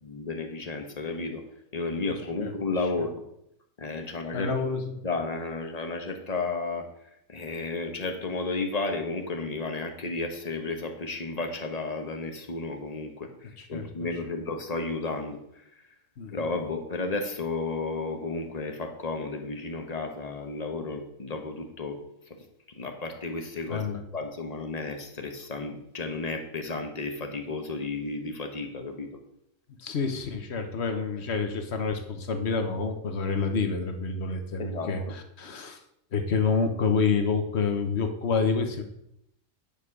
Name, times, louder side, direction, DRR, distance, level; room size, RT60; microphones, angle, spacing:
voice 1, 0.0-1.4 1.7-3.1 3.8-4.5 5.0-6.9 7.3-15.4 16.3-22.0 22.7-23.8 24.1-29.1 34.6-35.1, left 3 dB, 30° left, 4 dB, 1.1 m, -33 dB
voice 2, 4.3-5.0 13.6-13.9 16.2-16.4 23.7-24.0 29.8-35.8 36.1-38.8, left 5 dB, 55° left, 6 dB, 1.2 m, -28 dB
9.0 x 5.0 x 6.0 m, 0.79 s
omnidirectional pair, 1.4 m